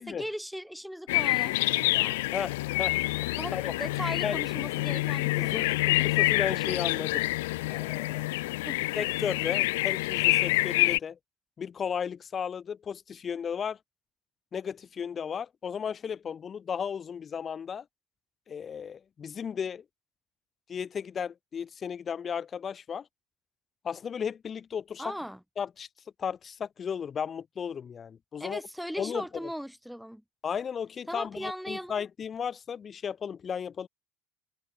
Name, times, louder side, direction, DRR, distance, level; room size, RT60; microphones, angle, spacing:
voice 1, 0.0-2.2 3.4-5.7 8.6-8.8 25.0-25.4 28.4-30.2 31.1-32.0, equal, ahead, 4.5 m, -38 dB
sound 1, 1.1-11.0, left 20 dB, 90° left, 0.5 m, -27 dB
voice 2, 2.3-3.0 3.5-3.7 4.2-4.4 5.3-7.3 7.7-8.3 9.0-11.2 11.6-13.8 14.5-17.8 18.5-19.8 20.7-23.0 23.8-25.0 25.6-25.9 26.2-28.6 29.0-29.2 30.4-33.9, left 7 dB, 35° left, 4.4 m, -34 dB
supercardioid pair, 105°, 0 cm